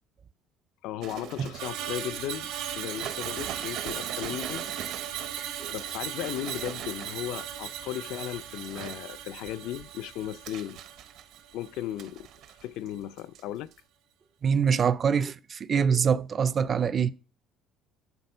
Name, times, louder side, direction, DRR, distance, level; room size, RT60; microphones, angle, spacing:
voice 1, 0.8-2.5 2.8-4.6 5.7-10.8 11.5-12.3 12.6-13.7, left 12 dB, 70° left, 0.4 m, -36 dB
sound 1, 1.0-2.0 2.5-7.5 8.1-9.0 9.5-11.5 12.0-12.9 13.2-13.4 13.7-13.8, right 10 dB, 60° right, 0.7 m, -43 dB
Screech, 1.5-11.9 12.2-12.5, right 10 dB, 90° right, 1.6 m, -37 dB
voice 2, 14.4-17.1, right 6 dB, 30° right, 0.4 m, -24 dB
10.5 x 4.2 x 5.3 m
cardioid pair, 160°, 0 cm